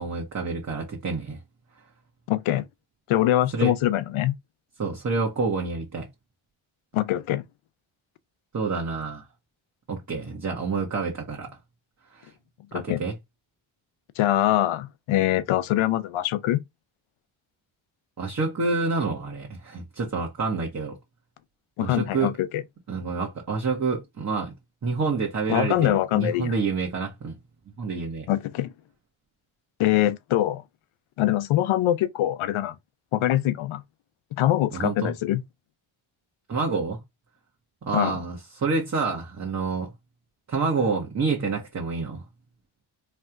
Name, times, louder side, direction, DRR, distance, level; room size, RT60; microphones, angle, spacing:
voice 1, 0.0-1.4 3.5-3.7 4.8-6.1 8.5-9.2 9.9-11.5 12.1-12.3 12.7-13.1 18.2-21.0 21.8-22.3 22.9-24.5 24.8-27.4 27.8-28.3 34.7-35.1 36.5-37.0 37.8-39.9 40.5-42.2, right 4 dB, 35° right, 1.2 m, -28 dB
voice 2, 2.3-2.6 3.1-4.3 6.9-7.4 12.7-13.0 14.2-16.6 21.8-22.6 25.5-26.5 28.3-28.7 29.8-30.6 31.2-32.7 33.1-33.8 34.3-35.4 37.9-38.1, left 13 dB, 85° left, 0.6 m, -23 dB
3.3 x 2.4 x 4.4 m
cardioid pair, 80°, 48 cm